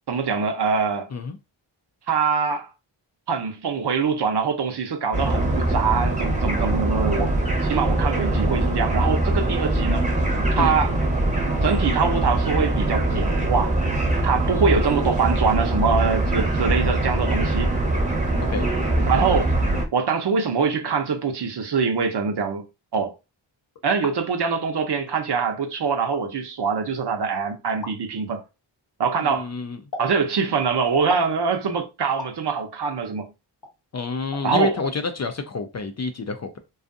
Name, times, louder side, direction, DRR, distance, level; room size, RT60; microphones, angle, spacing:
voice 1, 0.1-1.1 2.1-2.7 3.3-7.3 7.6-10.1 10.6-10.9 11.6-13.8 14.2-17.7 19.1-19.5 19.9-22.6 22.9-23.1 23.8-28.4 29.0-29.5 30.0-33.3 34.4-34.7, right 5 dB, 55° right, 0.7 m, -24 dB
sound 1, 5.1-19.9, right 1 dB, 15° right, 0.8 m, -22 dB
voice 2, 18.4-18.7 29.2-29.8 33.9-36.6, left 4 dB, 35° left, 0.4 m, -28 dB
sound 2, 23.8-24.2 25.1-25.2 26.0-26.2 27.8-28.0 29.9-30.1 31.1-31.3 32.2-32.4 33.6-33.7 34.3-34.5 34.8-34.9, left 4 dB, 50° left, 0.8 m, -34 dB
2.5 x 2.3 x 2.5 m
cardioid pair, 50°, 48 cm